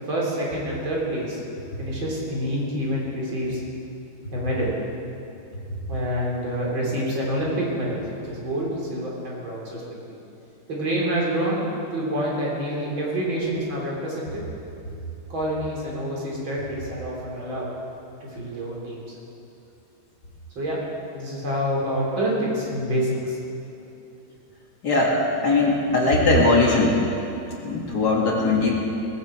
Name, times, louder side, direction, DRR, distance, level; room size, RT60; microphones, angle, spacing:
voice 1, 0.0-1.4 1.8-3.6 4.3-4.7 5.9-9.8 10.1-10.2 10.7-14.4 15.3-17.7 18.3-19.1 20.6-20.8 21.1-23.4, equal, 75° right, -4 dB, 4.4 m, -27 dB
voice 2, 24.8-25.2 25.4-27.0 27.6-28.7, left 2 dB, 55° left, -3 dB, 2.7 m, -19 dB
19.0 x 16.0 x 4.6 m, 2.9 s
omnidirectional pair, 2.2 m